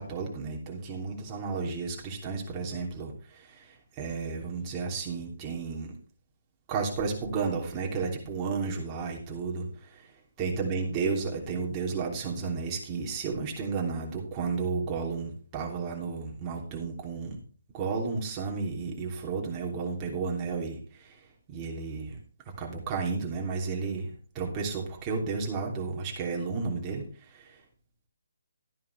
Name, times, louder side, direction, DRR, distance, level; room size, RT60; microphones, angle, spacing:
voice 1, 0.0-5.9 6.7-10.1 10.4-17.4 17.7-21.2 21.5-22.2 22.6-27.0 27.3-27.6, right 4 dB, 20° right, -1 dB, 3.0 m, -32 dB
13.0 x 10.5 x 3.4 m, 0.42 s
figure-of-eight pair, 145°, 0 cm